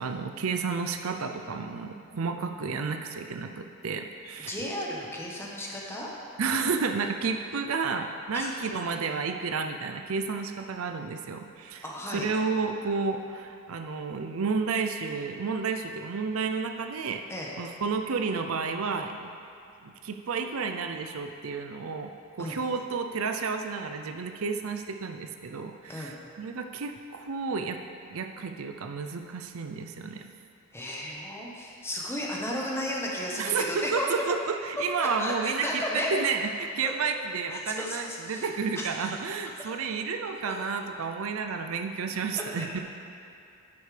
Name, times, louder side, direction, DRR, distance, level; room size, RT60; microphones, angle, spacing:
voice 1, 0.0-4.6 6.4-11.8 12.1-17.2 17.6-19.3 19.8-27.8 28.0-30.3 33.4-35.8 36.1-42.8, right 5 dB, 70° right, 5 dB, 0.5 m, -31 dB
voice 2, 4.5-6.1 8.3-8.5 11.8-12.3 17.3-17.5 22.4-22.6 25.9-26.2 30.7-34.1 35.2-36.1 36.8-36.9 37.5-38.5 38.7-39.1 39.6-39.7 40.4-40.5 42.4-42.7, left 1 dB, 10° left, -3 dB, 1.2 m, -34 dB
10.5 x 8.4 x 3.3 m, 2.5 s
head